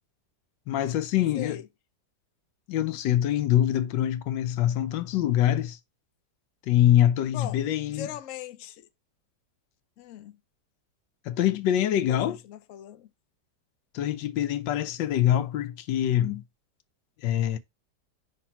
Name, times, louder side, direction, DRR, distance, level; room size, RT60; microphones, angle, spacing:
voice 1, 0.7-1.6 2.7-5.8 6.6-8.1 11.2-12.4 13.9-16.4 17.2-17.6, left 12 dB, 90° left, 1.3 m, -24 dB
voice 2, 1.3-1.7 7.3-8.9 10.0-10.4 12.1-13.1, left 11 dB, 65° left, 0.8 m, -40 dB
5.9 x 3.2 x 5.6 m
omnidirectional pair, 1.9 m